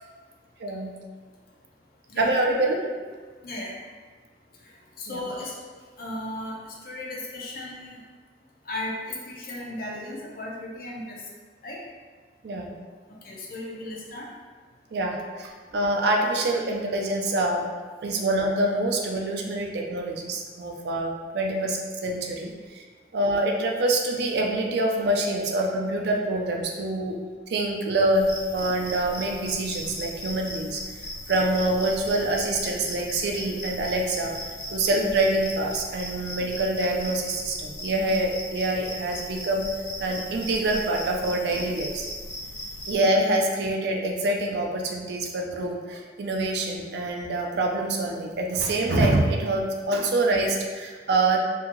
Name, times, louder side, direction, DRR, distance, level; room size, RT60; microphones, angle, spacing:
voice 1, 0.6-0.9 2.2-2.8 5.1-5.2 12.4-12.7 14.9-17.7 18.0-22.8 23.1-27.2 27.5-30.8 31.3-34.3 34.7-39.6 40.0-42.1 42.9-51.4, right 2 dB, 60° right, 0 dB, 0.4 m, -25 dB
voice 2, 3.4-3.7 5.0-5.6 6.0-8.0 8.7-11.2 11.6-11.8 13.2-14.3 21.3-21.4 25.2-25.3 34.6-34.7, left 1 dB, 50° left, -3 dB, 0.6 m, -36 dB
sound 1, 28.1-43.0, left 1 dB, 20° left, 0.7 m, -37 dB
2.7 x 2.7 x 2.6 m, 1.5 s
head